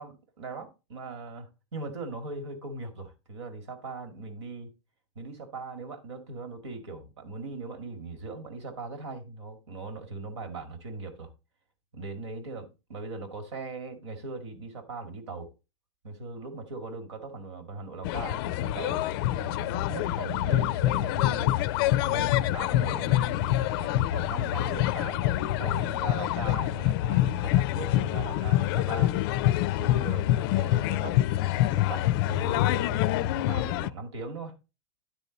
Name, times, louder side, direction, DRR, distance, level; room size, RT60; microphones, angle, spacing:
voice 1, 0.0-4.7 5.2-11.3 11.9-15.5 16.0-21.6 22.1-29.1 29.8-31.2 31.6-34.5, right 3 dB, 80° right, 2.0 m, -39 dB
sound 1, 18.0-33.9, left 14 dB, 55° left, 0.4 m, -26 dB
11.5 x 4.1 x 4.0 m
hypercardioid pair, 115°, 15 cm